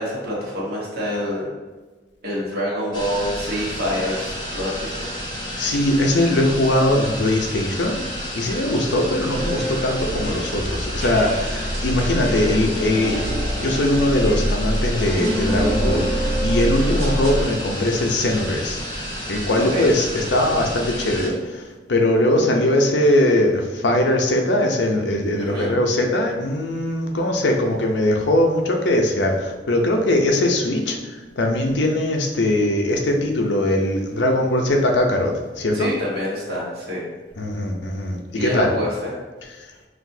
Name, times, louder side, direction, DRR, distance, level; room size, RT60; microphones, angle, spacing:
voice 1, 0.0-1.5 2.2-5.1 8.7-8.8 16.6-16.9 19.5-19.8 25.4-25.7 35.7-37.0 38.3-39.1, equal, 60° right, -5 dB, 1.4 m, -27 dB
sound 1, 2.9-21.3, equal, 25° left, 0.7 m, -31 dB
voice 2, 5.6-13.2 13.6-18.8 19.3-35.9 37.4-38.7 39.6-39.7, left 1 dB, 80° left, 2 dB, 0.6 m, -21 dB
sound 2, 9.3-17.4, equal, 40° right, 1.0 m, -25 dB
6.0 x 2.6 x 2.7 m, 1.3 s
head